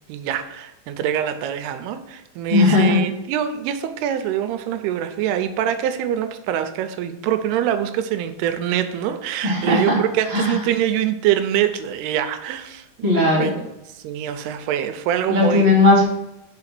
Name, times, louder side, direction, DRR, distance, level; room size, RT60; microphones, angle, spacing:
voice 1, 0.1-12.9 13.4-13.6 13.9-15.7, right 10 dB, 90° right, 9 dB, 2.7 m, -24 dB
voice 2, 2.5-3.0 9.4-10.0 10.3-10.6 13.0-13.5 15.3-16.0, left 2 dB, 15° right, -5 dB, 0.8 m, -17 dB
5.7 x 4.9 x 6.0 m, 0.90 s
omnidirectional pair, 4.5 m